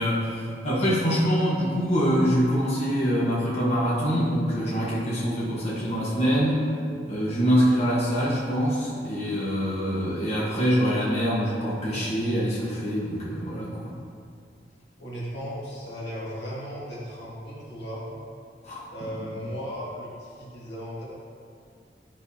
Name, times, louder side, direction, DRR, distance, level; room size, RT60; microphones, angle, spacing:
voice 1, 0.0-6.6 7.0-13.9 18.6-18.8, equal, 40° left, -8 dB, 1.4 m, -24 dB
voice 2, 15.0-18.2 18.9-21.1, equal, 75° left, -6 dB, 2.0 m, -36 dB
10.5 x 5.8 x 2.9 m, 2.3 s
head